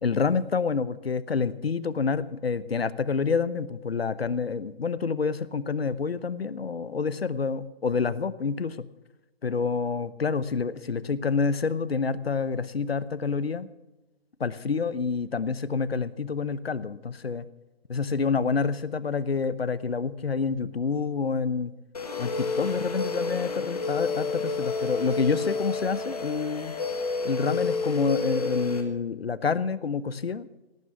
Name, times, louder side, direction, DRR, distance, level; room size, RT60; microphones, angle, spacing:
voice 1, 0.0-8.9 9.4-13.7 14.4-17.5 17.9-21.7 22.2-26.7 27.2-30.5, left 5 dB, 70° left, 16 dB, 1.0 m, -28 dB
sound 1, 21.9-28.8, left 3 dB, 35° left, 1.8 m, -30 dB
17.5 x 9.6 x 6.2 m, 1.0 s
figure-of-eight pair, 165°, 31 cm